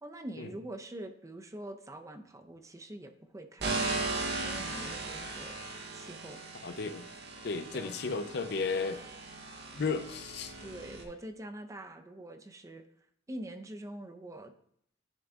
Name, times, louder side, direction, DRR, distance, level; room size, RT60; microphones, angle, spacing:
voice 1, 0.0-4.0 4.4-5.6 5.9-6.4 7.3-7.5 7.7-7.9 8.2-8.3 10.6-12.8 13.3-14.5, right 1 dB, 20° right, 6 dB, 0.5 m, -45 dB
sound 1, 3.6-11.0, right 3 dB, 65° right, 0.9 m, -38 dB
voice 2, 6.6-7.1 7.4-9.0 9.7-10.5, left 4 dB, 65° left, 9 dB, 0.5 m, -34 dB
10.0 x 3.8 x 3.5 m, 0.69 s
head